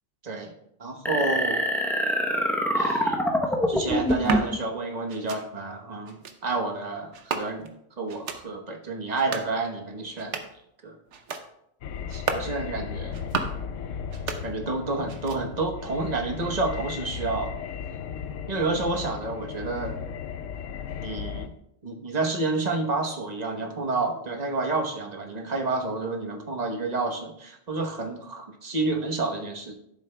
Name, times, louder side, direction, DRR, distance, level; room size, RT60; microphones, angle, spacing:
voice 1, 0.8-1.6 2.7-3.2 3.7-7.7 8.0-10.4 10.8-11.0 12.1-13.2 14.4-17.6 18.5-20.0 21.0-21.5 21.8-29.7, right 3 dB, 35° right, 3 dB, 1.1 m, -29 dB
sound 1, 1.1-4.6, equal, ahead, 0.6 m, -25 dB
sound 2, 4.1-4.5 5.1-5.4 6.1-6.4 7.1-7.8 8.1-8.4 9.1-9.5 10.1-10.6 11.1-11.5 12.1-12.5 13.1-13.6 14.1-14.8 15.1-15.6, right 6 dB, 70° right, 1.0 m, -34 dB
sound 3, 11.8-21.5, left 7 dB, 85° left, 1.0 m, -36 dB
12.5 x 7.3 x 2.2 m, 0.77 s
omnidirectional pair, 1.3 m